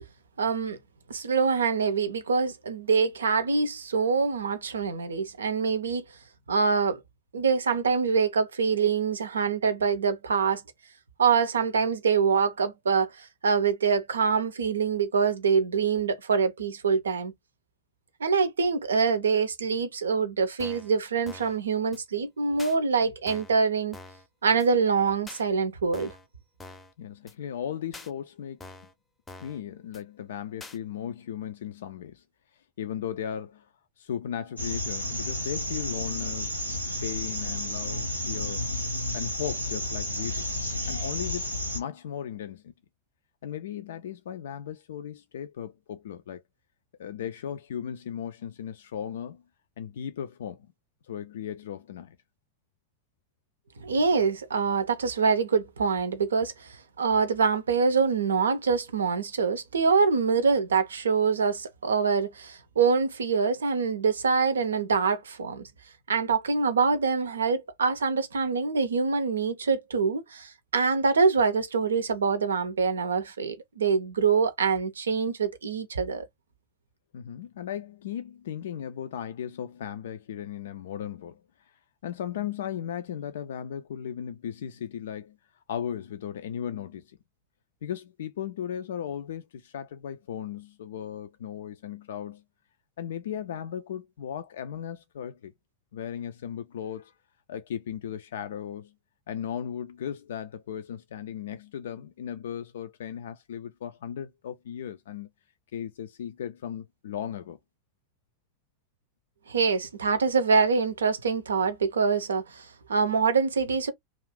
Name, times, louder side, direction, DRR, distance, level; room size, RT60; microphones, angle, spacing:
voice 1, 0.4-0.8 1.1-6.0 6.5-7.0 7.3-10.6 11.2-17.3 18.2-24.0 24.4-26.1 53.8-65.7 66.1-76.3 109.5-113.9, right 5 dB, 70° right, 0.5 m, -25 dB
sound 1, 20.6-20.9 21.3-21.6 21.9-22.0 22.6-22.8 23.3-23.6 23.9-24.3 24.6-24.7 25.3-25.4 25.9-26.3 26.6-26.9 27.3-27.4 27.9-28.1 28.6-28.9 29.3-29.6 29.9-30.0 30.6-30.8, left 3 dB, 15° left, 0.6 m, -45 dB
voice 2, 27.0-28.7 29.4-32.2 32.8-33.7 34.0-36.6 37.0-38.7 39.1-40.5 40.9-42.7 43.4-46.4 47.0-49.4 49.8-50.7 51.0-52.2 77.1-87.2 87.8-92.4 93.0-95.5 95.9-97.1 97.5-98.9 99.3-105.3 105.7-107.6, left 9 dB, 60° left, 0.3 m, -36 dB
sound 2, 34.6-41.8, left 1 dB, 90° left, 0.8 m, -31 dB
2.5 x 2.4 x 3.3 m
figure-of-eight pair, 90°, 0 cm